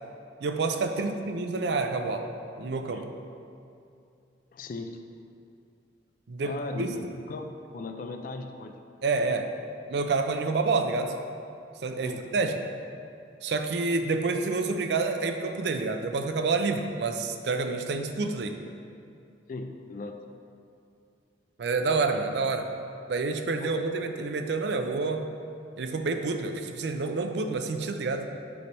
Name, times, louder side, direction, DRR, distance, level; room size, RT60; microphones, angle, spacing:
voice 1, 0.4-2.2 2.6-3.1 6.3-6.9 9.0-9.5 9.9-11.1 11.8-12.6 13.4-18.6 21.6-22.7 23.1-25.3 25.8-28.3, right 3 dB, 65° right, 6 dB, 0.4 m, -28 dB
voice 2, 4.5-5.0 6.4-8.7 12.0-12.5 19.5-20.2 23.6-23.8, left 3 dB, 45° left, 5 dB, 0.3 m, -38 dB
6.9 x 3.3 x 5.3 m, 2.5 s
head